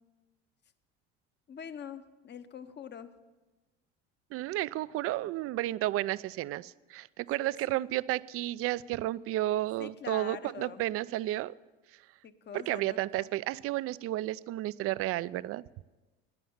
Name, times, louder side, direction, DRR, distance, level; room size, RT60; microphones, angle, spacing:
voice 1, 1.5-3.1 7.4-7.9 9.8-10.8 12.2-13.3, left 8 dB, 35° left, 11 dB, 1.0 m, -44 dB
voice 2, 4.3-11.5 12.5-15.6, right 15 dB, 50° right, 19 dB, 0.4 m, -32 dB
11.5 x 10.0 x 7.2 m, 1.2 s
hypercardioid pair, 80°, 30 cm